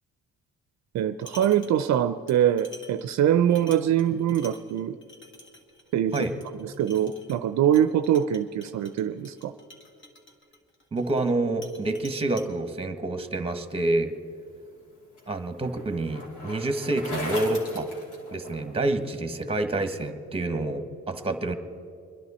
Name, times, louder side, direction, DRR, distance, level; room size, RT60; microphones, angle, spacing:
voice 1, 0.9-5.0 5.9-6.3 6.6-9.5, right 10 dB, 65° right, 11 dB, 0.5 m, -23 dB
sound 1, 1.0-2.0 2.3-11.3 11.6-12.5, left 1 dB, 40° left, 2.0 m, -49 dB
voice 2, 10.9-14.1 15.3-17.9 18.3-21.5, right 2 dB, 20° right, 8 dB, 1.3 m, -28 dB
Bicycle, 14.5-18.9, left 1 dB, 70° left, 3.3 m, -38 dB
24.5 x 10.5 x 4.3 m, 2.4 s
cardioid pair, 90°, 30 cm